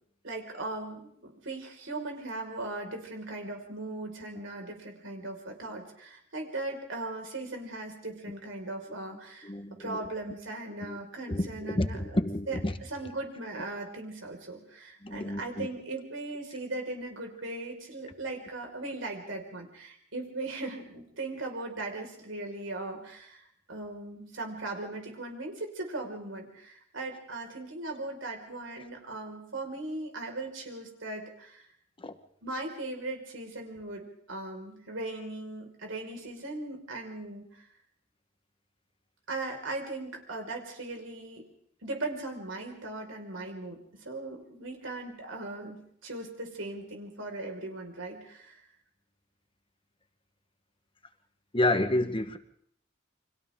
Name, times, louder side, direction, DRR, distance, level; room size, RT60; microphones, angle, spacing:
voice 1, 0.2-12.2 12.5-31.7 32.4-37.7 39.3-41.4 41.8-48.6, right 2 dB, 90° right, 5.4 m, -38 dB
voice 2, 9.4-10.0 10.8-11.0 11.3-12.7 15.0-15.7 32.0-32.2 51.5-52.4, left 1 dB, 25° left, 1.4 m, -29 dB
30.0 x 25.0 x 3.8 m
head